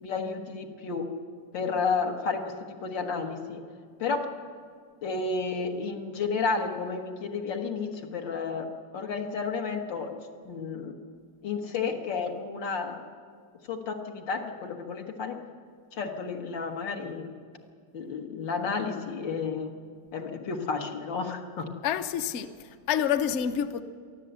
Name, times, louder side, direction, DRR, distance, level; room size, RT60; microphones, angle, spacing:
voice 1, 0.0-1.1 1.5-3.6 4.0-4.3 5.0-10.2 10.4-11.0 11.4-13.1 13.7-15.4 15.9-17.3 17.9-19.7 20.1-21.7, left 4 dB, 80° left, 2.2 m, -31 dB
voice 2, 21.8-23.8, left 9 dB, 55° left, 0.8 m, -28 dB
22.5 x 14.5 x 7.9 m
omnidirectional pair, 2.0 m